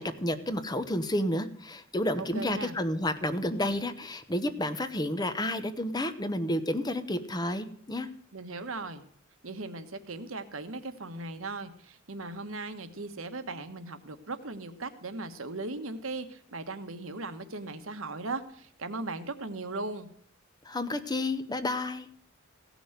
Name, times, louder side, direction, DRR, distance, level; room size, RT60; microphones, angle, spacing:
voice 1, 0.0-8.1 20.7-22.1, left 1 dB, 20° left, 10 dB, 0.9 m, -31 dB
voice 2, 2.2-2.8 8.3-9.0 9.4-20.1, right 3 dB, 80° right, 9 dB, 1.3 m, -38 dB
16.0 x 6.2 x 8.0 m, 0.62 s
head